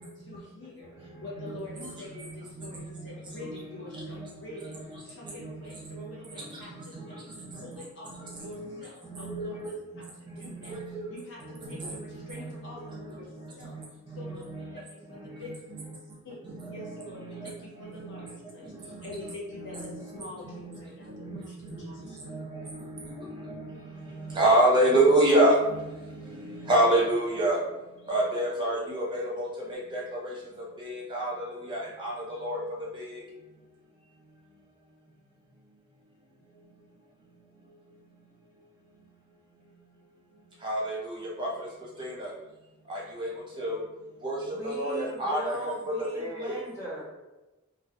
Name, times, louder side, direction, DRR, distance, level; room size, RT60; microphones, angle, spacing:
voice 1, 0.1-10.8 11.1-13.3 13.5-13.8 14.1-15.9 16.2-16.4 16.7-22.4, left 2 dB, 60° left, -4 dB, 0.7 m, -46 dB
voice 2, 7.3-7.7 8.2-8.7 9.1-9.7 10.3-11.0 11.7-11.9 12.3-12.5 12.9-13.0 13.7-13.8 14.1-14.7 16.4-17.5 18.0-18.2 19.1-19.3 19.6-20.0 20.4-20.8 21.1-21.8 22.2-23.1 23.4-23.7 24.2-25.8 26.2-27.6 28.1-30.3 30.8-32.1 32.4-32.6 32.9-33.2 40.6-41.5 42.0-42.3 42.9-43.3 43.6-43.7 44.2-44.4 44.6-45.7 46.1-46.5, right 1 dB, 20° right, -5 dB, 0.7 m, -28 dB
voice 3, 44.5-47.0, right 1 dB, 20° left, -11 dB, 1.0 m, -39 dB
2.3 x 2.2 x 2.6 m, 1.1 s
head